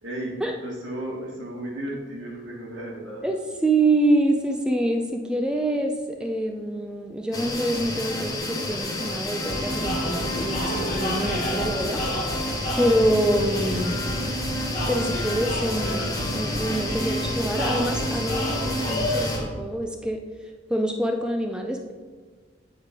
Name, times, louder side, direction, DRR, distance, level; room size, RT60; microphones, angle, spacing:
voice 1, 0.0-3.2, right 1 dB, 85° right, -3 dB, 1.8 m, -34 dB
voice 2, 3.2-12.4 12.8-14.0 14.9-20.2 20.7-21.9, right 1 dB, 5° right, 3 dB, 0.3 m, -26 dB
sound 1, 7.3-19.4, left 1 dB, 20° left, 0.7 m, -30 dB
sound 2, 9.4-19.4, equal, 45° left, 1.4 m, -30 dB
8.3 x 3.2 x 5.0 m, 1.5 s
head